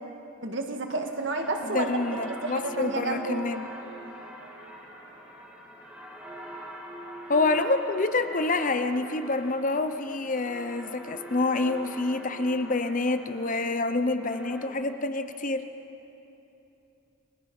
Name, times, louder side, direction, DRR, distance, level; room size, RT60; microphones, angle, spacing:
voice 1, 0.4-2.0 2.4-3.4, right 2 dB, 60° right, 4 dB, 1.9 m, -30 dB
sound 1, 0.9-14.6, right 1 dB, 10° right, 3.2 m, -43 dB
voice 2, 1.6-3.7 7.3-15.6, left 3 dB, 40° left, 9 dB, 0.8 m, -27 dB
30.0 x 22.5 x 5.5 m, 3.0 s
head